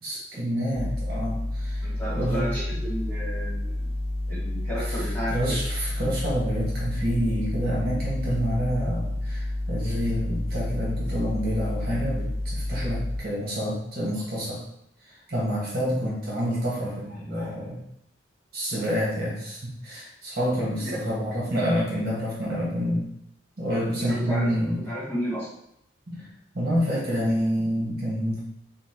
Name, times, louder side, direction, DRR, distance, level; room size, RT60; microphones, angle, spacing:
voice 1, 0.0-1.8 2.1-2.5 4.8-4.9 5.3-14.6 15.3-17.8 18.5-23.1 23.6-24.8 26.1-26.3 26.5-28.4, equal, 55° right, -6 dB, 1.4 m, -28 dB
sound 1, 0.7-13.2, left 1 dB, 30° left, 0.5 m, -30 dB
voice 2, 1.8-3.9 4.3-5.6 20.8-21.0 24.0-24.6 24.9-25.5, equal, 10° left, -8 dB, 1.4 m, -33 dB
5.5 x 2.3 x 2.8 m, 0.75 s
head